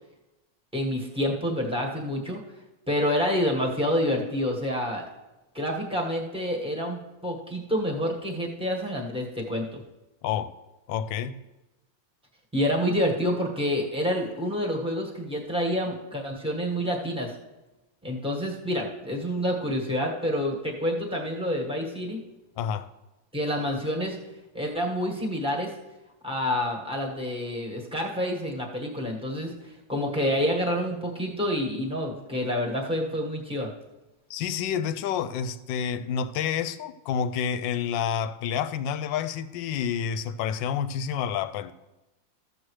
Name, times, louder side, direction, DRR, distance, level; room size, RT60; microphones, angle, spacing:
voice 1, 0.7-2.4 2.9-5.0 5.5-9.8 12.5-17.3 18.0-22.2 23.3-24.2 24.5-25.7 26.2-33.7, equal, 5° right, 1.1 m, -28 dB
voice 2, 10.9-11.3 22.6-22.9 34.3-41.7, left 8 dB, 80° left, 1.2 m, -29 dB
14.0 x 7.6 x 3.2 m
omnidirectional pair, 2.0 m